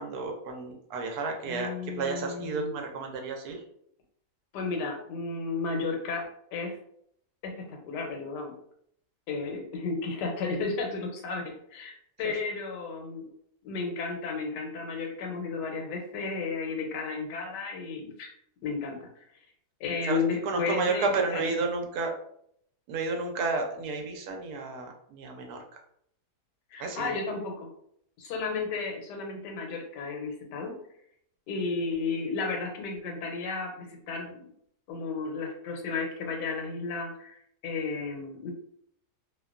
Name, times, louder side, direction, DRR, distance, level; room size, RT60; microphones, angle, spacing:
voice 1, 0.0-1.7 2.0-3.6 20.1-22.1 22.9-25.6 26.8-27.2, right 4 dB, 75° right, 2 dB, 1.0 m, -31 dB
voice 2, 1.4-2.8 4.5-6.8 7.4-8.5 9.3-13.3 13.6-18.3 18.6-19.1 19.8-21.6 26.7-27.7 28.2-30.7 31.5-34.5 34.9-38.5, left 4 dB, 85° left, 2 dB, 1.2 m, -33 dB
2.8 x 2.2 x 2.3 m, 0.69 s
omnidirectional pair, 1.8 m